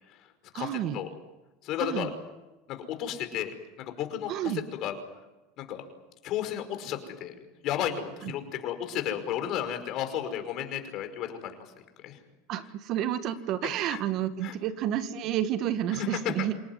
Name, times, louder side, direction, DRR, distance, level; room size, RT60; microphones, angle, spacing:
voice 1, 0.5-1.0 1.8-2.1 4.3-4.6 8.2-8.3 12.5-16.5, right 11 dB, 50° right, 10 dB, 1.8 m, -30 dB
voice 2, 1.6-2.1 2.7-4.9 5.6-5.8 6.2-7.3 7.6-11.6 12.0-12.2 13.9-14.0 14.4-14.6 15.9-16.2, left 10 dB, 50° left, 7 dB, 5.3 m, -33 dB
28.0 x 18.5 x 9.6 m, 1.1 s
supercardioid pair, 130°, 0 cm